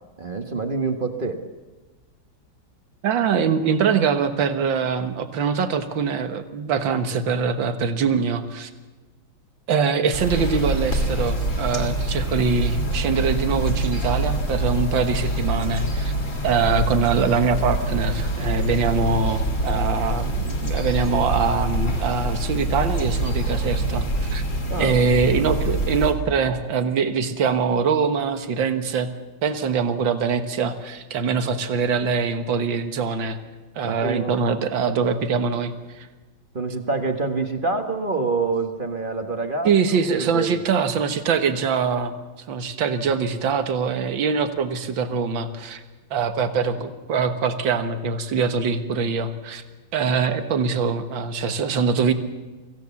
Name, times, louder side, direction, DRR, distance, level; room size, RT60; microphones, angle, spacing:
voice 1, 0.2-1.4 24.7-25.3 33.8-34.6 36.5-39.7 40.2-40.7, right 3 dB, 30° right, 5 dB, 1.5 m, -26 dB
voice 2, 3.0-8.7 9.7-16.1 16.4-24.4 24.8-29.1 29.4-33.4 33.8-36.1 39.6-42.2 42.5-45.8 46.1-49.6 49.9-52.1, right 5 dB, 75° right, 8 dB, 2.1 m, -23 dB
sound 1, 10.1-26.1, right 1 dB, 40° left, 2.9 m, -25 dB
24.5 x 16.0 x 7.1 m, 1.2 s
omnidirectional pair, 2.1 m